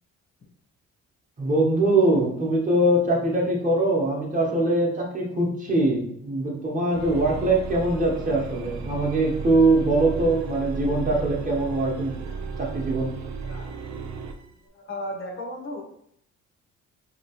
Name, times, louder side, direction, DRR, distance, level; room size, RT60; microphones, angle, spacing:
voice 1, 1.4-12.2 12.6-13.1, right 2 dB, 25° right, -2 dB, 0.9 m, -22 dB
sound 1, 6.9-14.4, right 4 dB, 65° right, 0.5 m, -34 dB
voice 2, 13.4-13.9 14.7-16.0, left 1 dB, 40° left, 2 dB, 0.8 m, -35 dB
2.9 x 2.8 x 2.9 m, 0.70 s
cardioid pair, 90°, 30 cm